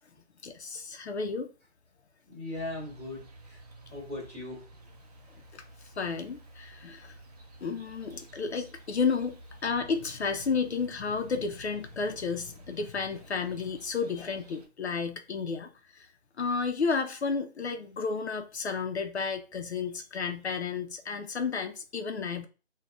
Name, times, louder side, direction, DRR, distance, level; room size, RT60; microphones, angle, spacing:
voice 1, 0.4-1.5 5.5-7.2 7.6-9.3 9.6-16.1 16.4-22.5, left 5 dB, 75° left, 6 dB, 0.6 m, -32 dB
voice 2, 2.3-3.6 3.9-4.6 5.3-5.4 8.1-8.2 8.5-8.6, left 2 dB, 5° left, -5 dB, 1.7 m, -39 dB
sound 1, 2.5-14.7, right 1 dB, 35° right, 0.7 m, -52 dB
6.8 x 2.3 x 2.4 m, 0.34 s
figure-of-eight pair, 155°, 33 cm